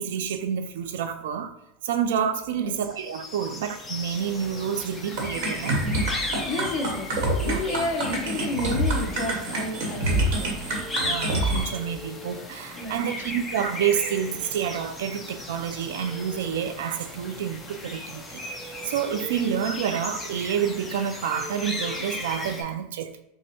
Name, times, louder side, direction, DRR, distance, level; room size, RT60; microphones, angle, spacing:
voice 1, 0.0-1.5 1.8-5.9 7.4-7.6 11.0-23.2, right 8 dB, 80° right, 0.3 m, -29 dB
sound 1, 3.0-22.6, left 2 dB, 10° left, 0.4 m, -36 dB
sound 2, 5.2-11.6, right 1 dB, 60° right, 1.1 m, -26 dB
voice 2, 6.5-11.2 12.7-13.2, left 2 dB, 30° left, 0.7 m, -31 dB
5.4 x 2.1 x 2.9 m
supercardioid pair, 165°, 0 cm